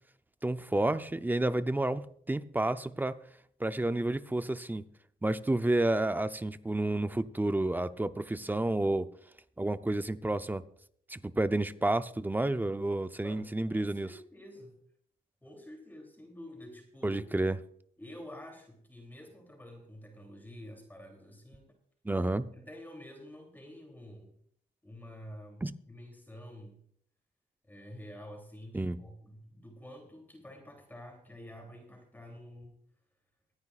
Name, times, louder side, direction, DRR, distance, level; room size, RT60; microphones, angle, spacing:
voice 1, 0.4-3.2 3.6-4.8 5.2-9.1 9.6-10.6 11.1-14.1 17.0-17.6 22.0-22.4 25.6-25.7 28.7-29.0, right 2 dB, 10° right, 12 dB, 0.6 m, -30 dB
voice 2, 13.2-14.8 15.4-17.2 18.0-21.7 22.5-24.4 24.8-26.8 27.6-32.7, left 1 dB, 10° left, 2 dB, 3.0 m, -49 dB
24.0 x 9.5 x 2.4 m, 0.63 s
cardioid pair, 85°, 17 cm